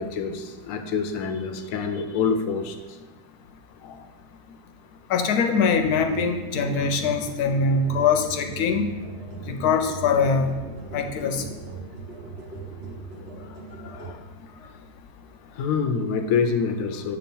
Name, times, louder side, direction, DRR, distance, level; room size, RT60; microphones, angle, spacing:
voice 1, 0.0-3.0 3.8-4.1 9.3-9.5 13.4-14.2 14.5-14.7 15.5-17.2, left 5 dB, 70° left, 6 dB, 0.9 m, -27 dB
voice 2, 5.1-8.9 9.5-10.5 10.9-11.4, left 5 dB, 85° left, 5 dB, 1.1 m, -22 dB
sound 1, 5.7-14.1, right 3 dB, 45° right, 1.0 m, -39 dB
7.4 x 2.9 x 5.3 m, 1.1 s
omnidirectional pair, 1.6 m